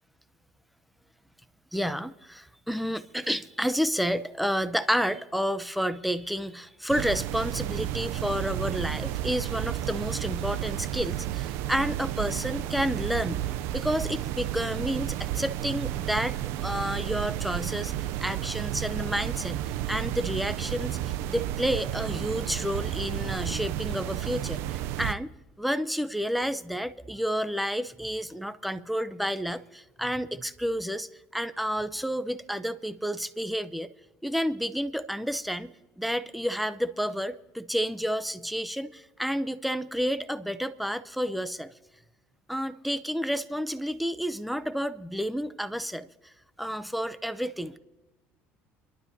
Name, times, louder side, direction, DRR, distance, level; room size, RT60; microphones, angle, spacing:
voice 1, 1.7-13.4 13.7-16.4 16.6-17.9 18.2-33.9 34.2-41.7 42.5-46.1 46.6-47.8, equal, ahead, 13 dB, 0.7 m, -30 dB
sound 1, 6.9-25.1, right 13 dB, 75° right, 0.5 m, -32 dB
28.0 x 12.0 x 2.8 m, 1.1 s
cardioid pair, 110°, 4 cm